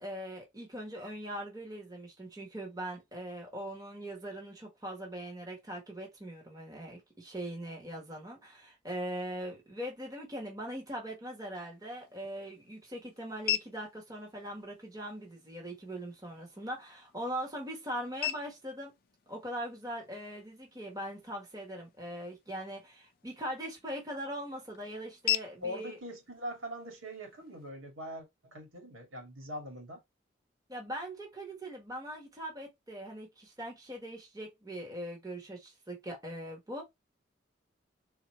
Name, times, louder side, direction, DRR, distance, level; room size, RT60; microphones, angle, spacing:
voice 1, 0.0-18.9 19.3-26.0 30.7-36.8, right 1 dB, 20° right, 1.3 m, -41 dB
sound 1, 11.7-27.7, left 12 dB, 50° left, 0.4 m, -42 dB
voice 2, 25.6-30.0, equal, 90° right, 2.0 m, -42 dB
3.9 x 2.9 x 3.1 m
head